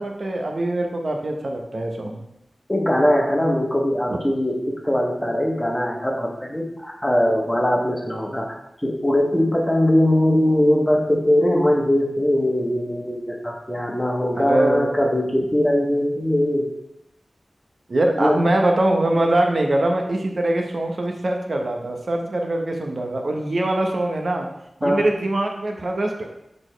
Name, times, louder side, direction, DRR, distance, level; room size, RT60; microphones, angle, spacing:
voice 1, 0.0-2.2 14.3-15.2 17.9-24.5 24.8-26.3, right 1 dB, 60° right, 2 dB, 1.0 m, -23 dB
voice 2, 2.7-16.7 18.2-18.4 24.8-25.0, left 1 dB, 15° left, 0 dB, 1.3 m, -21 dB
6.9 x 4.3 x 3.3 m, 0.82 s
wide cardioid pair, 60°, 0 cm